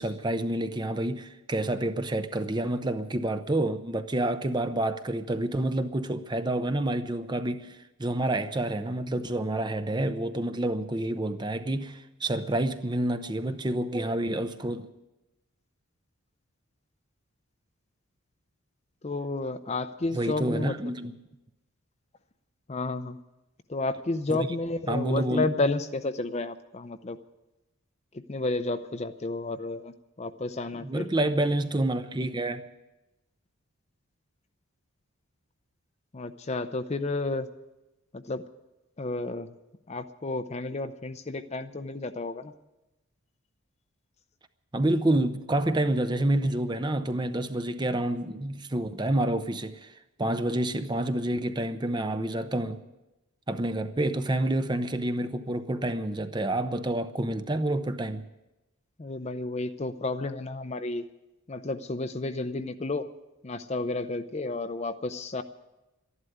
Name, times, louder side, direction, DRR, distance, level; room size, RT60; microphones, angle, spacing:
voice 1, 0.0-14.9 20.1-21.1 24.3-24.5 24.9-25.5 30.8-32.7 44.7-49.9 50.2-52.8 53.5-58.3, right 1 dB, 20° right, 0.6 m, -28 dB
voice 2, 19.0-20.9 22.7-23.2 23.7-27.2 28.3-31.1 36.1-37.5 38.1-38.4 39.0-39.5 39.9-42.5 59.0-61.0 61.5-63.1 63.4-65.4, left 2 dB, 30° left, 0.5 m, -31 dB
13.0 x 11.0 x 9.3 m
head